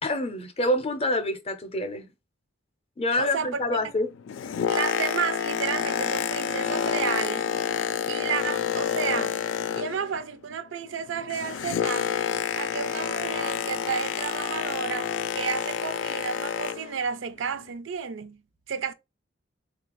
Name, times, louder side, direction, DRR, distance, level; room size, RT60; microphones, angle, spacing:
voice 1, 0.0-2.1 3.0-4.1, left 1 dB, 30° left, 0.5 m, -27 dB
voice 2, 3.2-3.8 4.7-7.5 8.1-9.4 9.8-12.2 12.5-18.9, right 6 dB, 75° right, 0.4 m, -32 dB
Boat Water vehicle, 4.1-10.2 10.5-17.0 17.6-17.7, left 8 dB, 75° left, 0.3 m, -29 dB
3.5 x 2.3 x 3.0 m
head